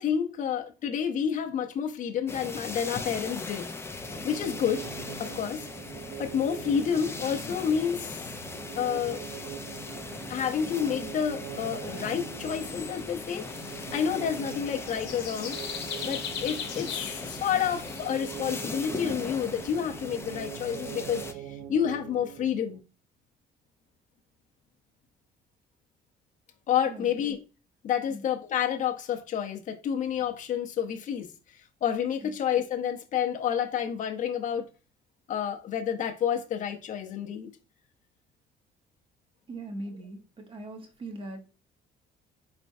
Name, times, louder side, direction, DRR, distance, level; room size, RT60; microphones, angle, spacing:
voice 1, 0.0-3.7 4.2-4.9 5.2-5.7 6.2-8.3 8.7-9.2 10.3-15.6 16.0-22.8 26.7-27.4 27.8-31.3 31.8-34.6 35.3-37.5, left 8 dB, 50° left, 0.7 m, -29 dB
sound 1, 2.3-21.3, left 3 dB, 15° left, 0.5 m, -39 dB
sound 2, 4.0-22.8, right 10 dB, 55° right, 0.4 m, -43 dB
sound 3, 12.4-19.7, left 8 dB, 85° left, 0.9 m, -41 dB
voice 2, 39.5-41.4, right 2 dB, 30° right, 1.1 m, -40 dB
4.3 x 3.3 x 2.6 m
cardioid pair, 110°, 17 cm